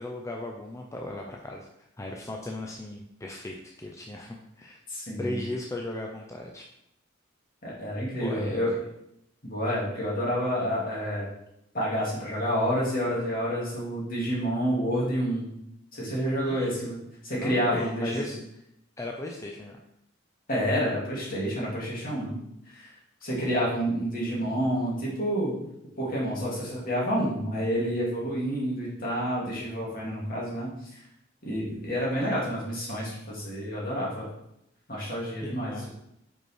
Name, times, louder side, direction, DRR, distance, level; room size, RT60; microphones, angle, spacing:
voice 1, 0.0-4.8 5.2-6.7 8.1-8.8 16.4-16.7 17.4-18.4 19.0-19.8 23.3-23.6 35.4-35.9, left 1 dB, 15° left, 1 dB, 0.5 m, -37 dB
voice 2, 4.9-5.4 7.6-8.7 9.4-11.2 11.7-15.5 15.9-17.0 17.2-18.3 20.5-22.4 22.7-22.9 23.2-25.5 26.0-31.0 31.4-34.3 34.9-35.9, equal, 50° left, -5 dB, 2.4 m, -29 dB
5.3 x 4.7 x 4.5 m, 0.80 s
head